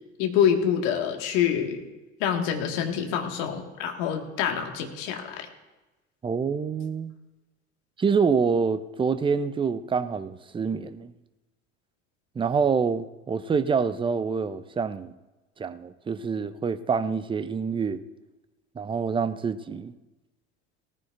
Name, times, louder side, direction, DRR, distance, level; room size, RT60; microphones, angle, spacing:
voice 1, 0.2-1.8 2.2-5.5, left 8 dB, 60° left, 2.0 m, -26 dB
voice 2, 6.2-7.1 8.0-11.1 12.4-15.1 15.6-18.0 18.8-19.9, right 5 dB, 15° right, 0.6 m, -26 dB
18.5 x 14.5 x 2.6 m
hypercardioid pair, 75°, 38 cm